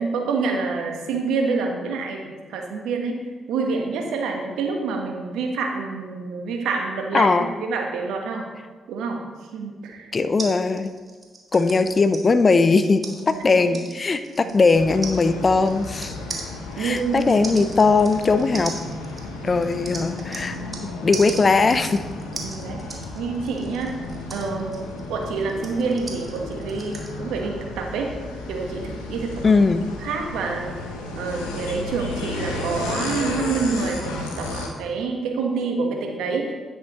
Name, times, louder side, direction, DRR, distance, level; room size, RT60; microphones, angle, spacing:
voice 1, 0.0-3.2 3.5-8.5 8.9-9.2 9.5-10.1 13.3-13.8 14.4-14.6 16.1-16.4 16.8-17.5 19.4-19.6 22.4-22.9 23.1-24.0 24.3-28.1 28.5-29.6 30.0-30.7 31.1-36.5, right 4 dB, 70° right, 2 dB, 1.3 m, -27 dB
voice 2, 7.1-7.5 10.1-10.9 11.5-16.1 16.8-18.7 19.4-20.6 20.8-22.0 29.4-29.8, left 4 dB, 40° left, 11 dB, 0.7 m, -19 dB
sound 1, 10.4-20.9 21.1-27.1, right 3 dB, 40° right, 2.2 m, -38 dB
sound 2, 14.7-34.7, left 2 dB, 85° left, 1.1 m, -33 dB
10.5 x 10.0 x 3.1 m, 1.4 s
hypercardioid pair, 40°, 0 cm